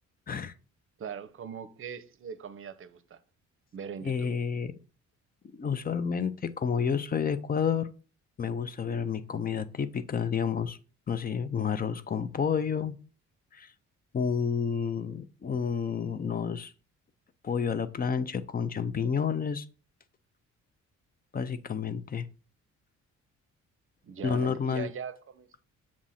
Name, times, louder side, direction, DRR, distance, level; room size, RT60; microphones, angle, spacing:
voice 1, 1.0-3.2 3.7-4.3 24.0-25.5, right 7 dB, 45° right, 0.7 m, -40 dB
voice 2, 4.0-4.7 5.5-7.9 8.4-10.8 11.1-12.9 13.5-13.7 14.1-16.7 17.4-19.6 21.3-22.3 24.2-24.9, left 6 dB, 30° left, 0.5 m, -30 dB
7.3 x 2.5 x 5.6 m
cardioid pair, 90°, 30 cm